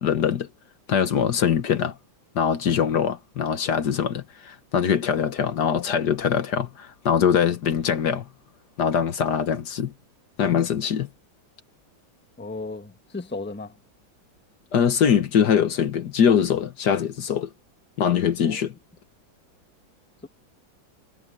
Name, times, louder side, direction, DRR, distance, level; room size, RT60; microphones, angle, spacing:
voice 1, 0.0-0.5 0.9-1.9 2.3-8.2 8.8-9.9 10.4-11.1 14.7-17.5 18.0-18.7, left 8 dB, 65° left, 1.6 m, -22 dB
voice 2, 12.4-13.7 18.4-18.6, left 3 dB, 5° left, 1.0 m, -35 dB
omnidirectional pair, 2.1 m